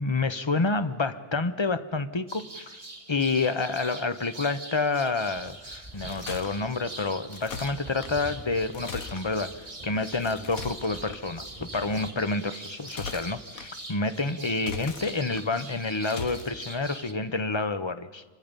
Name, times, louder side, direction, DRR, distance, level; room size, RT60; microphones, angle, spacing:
voice 1, 0.0-2.8 3.1-18.2, left 3 dB, 25° left, 11 dB, 0.7 m, -29 dB
sound 1, 2.3-17.1, right 2 dB, 25° right, 1.4 m, -43 dB
sound 2, 5.3-12.1, right 2 dB, 10° left, 5.1 m, -48 dB
sound 3, 5.9-6.5 7.3-8.1 8.7-9.3 10.2-11.2 12.7-13.7 14.5-15.4 16.0-16.5, left 5 dB, 70° left, 1.5 m, -39 dB
28.0 x 24.0 x 5.4 m, 1.4 s
omnidirectional pair, 1.5 m